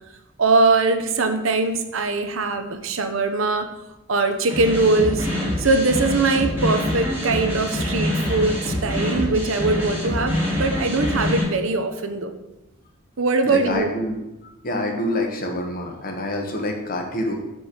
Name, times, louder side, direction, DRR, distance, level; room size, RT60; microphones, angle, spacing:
voice 1, 0.4-3.7 4.1-5.3 5.6-12.3 13.2-13.9, right 3 dB, 85° right, 7 dB, 0.8 m, -21 dB
sound 1, 4.5-11.4, left 1 dB, 10° right, 2.9 m, -25 dB
voice 2, 13.4-14.2 14.6-17.3, left 1 dB, 45° left, 2 dB, 1.3 m, -26 dB
5.3 x 5.2 x 6.3 m, 0.96 s
head